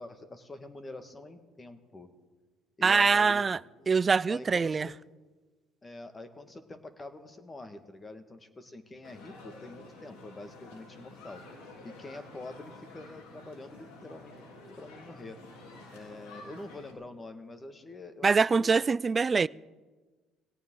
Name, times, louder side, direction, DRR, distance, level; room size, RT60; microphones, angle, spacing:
voice 1, 0.0-2.1 2.8-3.5 3.8-3.9 4.3-4.9 5.8-11.4 11.8-14.4 14.8-15.4 15.9-18.8, left 2 dB, 20° left, 1.7 m, -45 dB
voice 2, 2.8-3.6 3.9-4.9 18.2-19.5, right 5 dB, 30° right, 0.3 m, -24 dB
sound 1, 9.0-16.9, left 2 dB, 90° left, 3.4 m, -50 dB
18.5 x 17.0 x 3.8 m
supercardioid pair, 90°, 0 cm